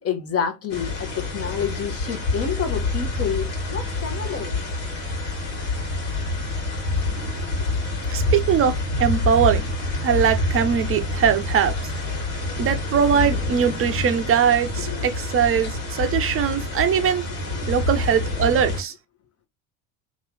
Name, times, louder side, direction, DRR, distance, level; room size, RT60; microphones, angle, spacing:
voice 1, 0.0-4.6 14.8-15.1 17.6-17.7, left 7 dB, 30° left, 1.0 m, -29 dB
sound 1, 0.7-18.8, left 2 dB, 60° left, 1.7 m, -27 dB
voice 2, 8.1-9.6 10.0-11.7 12.6-17.2 17.7-18.9, right 8 dB, 30° right, 0.7 m, -21 dB
3.0 x 2.5 x 3.0 m
hypercardioid pair, 65°, 45 cm